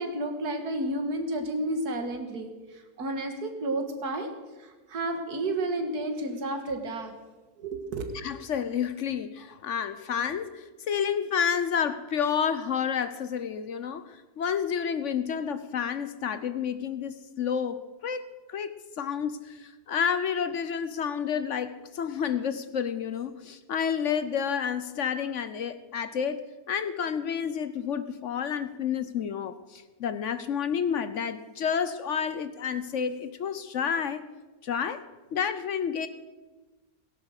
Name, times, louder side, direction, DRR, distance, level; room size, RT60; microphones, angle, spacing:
voice 1, 0.0-2.5 3.0-4.3 4.6-7.1 7.6-8.1, right 1 dB, 80° right, 6 dB, 2.2 m, -31 dB
voice 2, 8.1-26.4 26.7-34.2 34.6-35.0 35.3-36.1, left 7 dB, 60° left, 12 dB, 1.0 m, -30 dB
17.5 x 10.5 x 6.5 m, 1.2 s
omnidirectional pair, 1.6 m